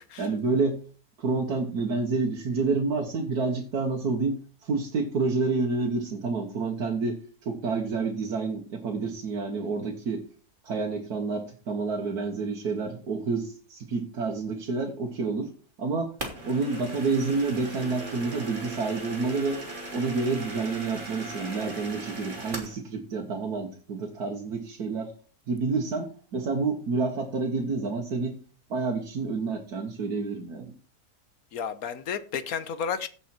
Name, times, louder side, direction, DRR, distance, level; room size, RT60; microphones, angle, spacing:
voice 1, 0.2-0.8 1.2-10.2 10.6-15.5 15.8-16.1 16.4-19.6 19.9-25.1 25.5-28.3 28.7-30.7, right 4 dB, 85° right, 1.9 m, -29 dB
sound 1, 16.2-22.8, right 2 dB, 30° right, 2.7 m, -38 dB
voice 2, 31.5-33.1, left 7 dB, 70° left, 1.4 m, -32 dB
16.0 x 5.4 x 4.4 m
omnidirectional pair, 1.6 m